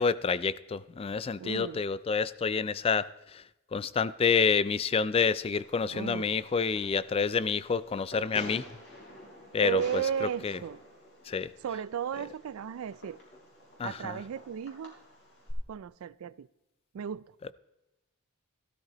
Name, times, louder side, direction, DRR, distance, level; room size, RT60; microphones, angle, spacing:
voice 1, 0.0-3.1 3.7-8.6 9.5-9.8 10.4-10.5 11.3-11.5 13.8-14.2, left 5 dB, 25° left, 0.3 m, -28 dB
voice 2, 1.4-1.8 5.9-6.4 9.6-10.8 11.6-13.2 13.8-14.9 15.7-16.5 16.9-17.2, right 8 dB, 70° right, 0.3 m, -35 dB
Fireworks, 5.5-15.5, equal, 50° left, 4.0 m, -49 dB
15.5 x 13.0 x 3.0 m
head